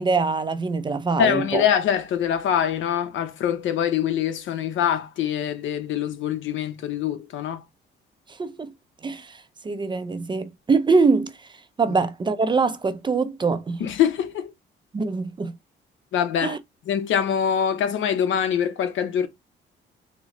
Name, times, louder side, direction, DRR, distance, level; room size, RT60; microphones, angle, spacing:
voice 1, 0.0-1.6 8.3-8.7 9.0-11.5 11.8-13.8 14.9-15.6 16.4-16.6, right 4 dB, 25° right, 0.4 m, -24 dB
voice 2, 1.2-7.6 13.8-14.5 16.1-16.6 16.9-19.3, left 8 dB, 75° left, 0.6 m, -24 dB
3.8 x 2.0 x 2.9 m
cardioid pair, 90°, 20 cm